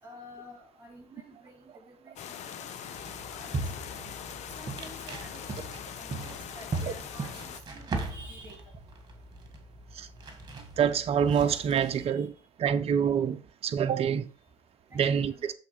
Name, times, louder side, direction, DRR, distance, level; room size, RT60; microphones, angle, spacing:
voice 1, 0.0-3.9 4.5-8.7 11.9-12.3 14.9-15.5, equal, 15° right, 4.2 m, -51 dB
sound 1, 2.2-7.6, left 8 dB, 55° left, 0.8 m, -42 dB
sound 2, 2.9-12.1, right 3 dB, 30° right, 1.9 m, -39 dB
voice 2, 10.8-12.3 12.6-14.3 14.9-15.5, right 8 dB, 45° right, 0.8 m, -26 dB
7.2 x 4.0 x 5.2 m
hypercardioid pair, 75°, 14 cm